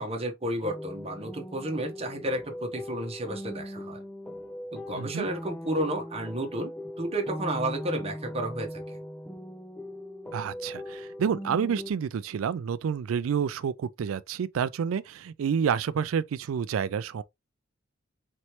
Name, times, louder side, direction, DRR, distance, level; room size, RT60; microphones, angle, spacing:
voice 1, 0.0-4.0 4.7-6.7 7.0-9.0, right 1 dB, 30° right, 1.1 m, -32 dB
sound 1, 0.6-11.9, equal, 5° left, 0.4 m, -39 dB
voice 2, 4.9-5.3 10.3-17.2, right 7 dB, 75° right, 0.3 m, -29 dB
4.3 x 3.1 x 3.0 m
head